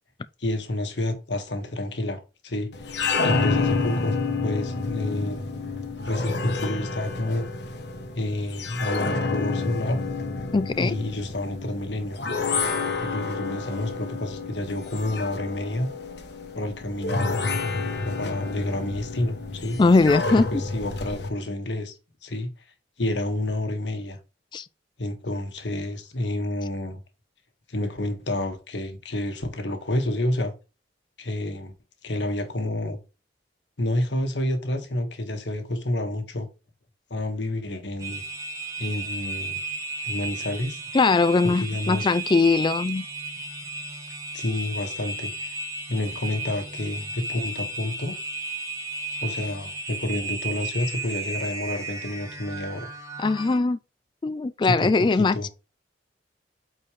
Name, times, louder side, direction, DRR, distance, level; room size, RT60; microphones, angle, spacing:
voice 1, 0.4-3.0 3.2-5.4 6.0-7.5 8.1-10.0 10.8-12.2 13.0-15.9 16.5-17.4 18.0-19.8 20.5-21.9 22.2-22.5 23.0-24.2 25.0-27.0 27.7-30.5 31.2-31.7 32.0-33.0 33.8-36.5 37.1-38.2 38.8-39.6 40.0-40.8 41.4-42.1 44.3-45.5 45.9-48.2 49.2-52.9 54.6-55.5, left 1 dB, 80° left, 1.6 m, -29 dB
sound 1, 2.7-21.3, left 3 dB, 65° left, 1.3 m, -29 dB
voice 2, 10.5-11.0 19.8-20.5 24.5-24.7 40.9-43.1 53.2-53.8 54.2-55.5, left 3 dB, 25° left, 0.3 m, -21 dB
sound 2, 38.0-53.6, right 3 dB, 20° right, 1.8 m, -34 dB
8.5 x 4.5 x 3.1 m
head